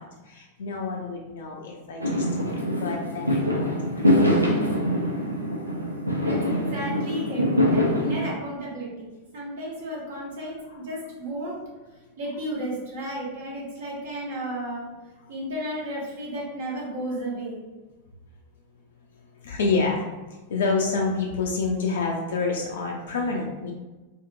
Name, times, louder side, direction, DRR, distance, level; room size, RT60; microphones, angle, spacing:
voice 1, 0.0-2.4 2.8-4.4 10.7-10.8 19.4-20.0 20.5-23.7, left 4 dB, 60° left, -1 dB, 0.3 m, -28 dB
Fireworks, 2.0-8.3, left 1 dB, 85° right, 0.4 m, -24 dB
voice 2, 6.2-9.1 9.3-11.6 12.2-14.8 15.3-17.6, right 1 dB, 55° right, -5 dB, 1.0 m, -33 dB
2.6 x 2.4 x 2.5 m, 1.1 s
figure-of-eight pair, 90°, 0 cm